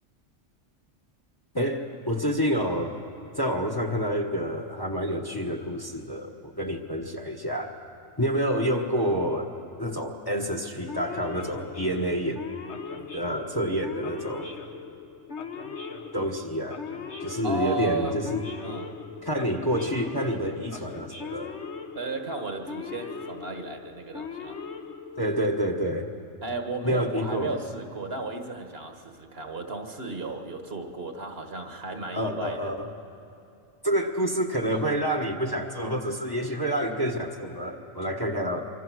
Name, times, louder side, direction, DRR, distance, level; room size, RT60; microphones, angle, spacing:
voice 1, 1.5-3.0 3.4-7.7 8.2-9.5 9.8-12.4 13.1-14.5 16.1-16.8 17.2-18.4 19.2-21.5 25.1-26.1 26.8-27.5 32.1-32.9 33.8-38.7, equal, 20° left, 4 dB, 1.2 m, -28 dB
Male speech man speaking / Siren, 10.9-25.6, left 5 dB, 65° left, 1.5 m, -39 dB
voice 2, 17.4-18.2 18.6-19.0 21.9-24.6 26.4-32.7, right 2 dB, 55° right, 5 dB, 1.7 m, -34 dB
25.0 x 24.5 x 6.2 m, 2.7 s
omnidirectional pair, 1.3 m